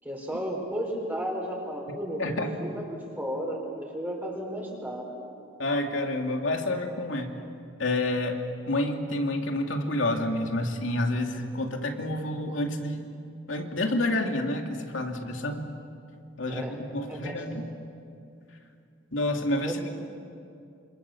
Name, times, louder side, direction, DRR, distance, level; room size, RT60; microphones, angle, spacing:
voice 1, 0.0-5.1 16.5-16.7 17.1-17.4 19.6-19.9, equal, 10° right, -1 dB, 4.1 m, -34 dB
voice 2, 2.2-2.6 5.6-7.3 7.8-13.1 13.5-15.7 16.4-17.7 19.1-19.9, left 1 dB, 85° left, 3 dB, 2.5 m, -29 dB
27.0 x 26.0 x 7.1 m, 2.5 s
head